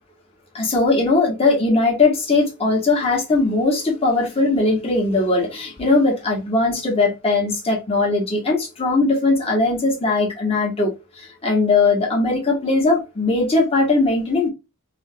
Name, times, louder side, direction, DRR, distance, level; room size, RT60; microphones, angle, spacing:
voice 1, 0.5-14.5, left 3 dB, 25° left, 1.3 m, -19 dB
3.5 x 2.3 x 2.7 m
head